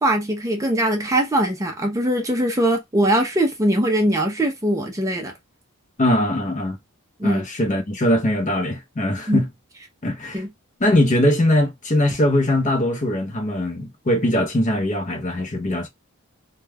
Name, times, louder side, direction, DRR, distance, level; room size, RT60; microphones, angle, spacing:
voice 1, 0.0-5.3 7.2-7.4 9.3-9.4 10.3-10.5, right 1 dB, 15° right, 0.5 m, -21 dB
voice 2, 6.0-6.8 7.2-9.5 10.0-10.4 10.8-15.9, left 1 dB, 35° left, 0.6 m, -21 dB
2.2 x 2.2 x 3.2 m
head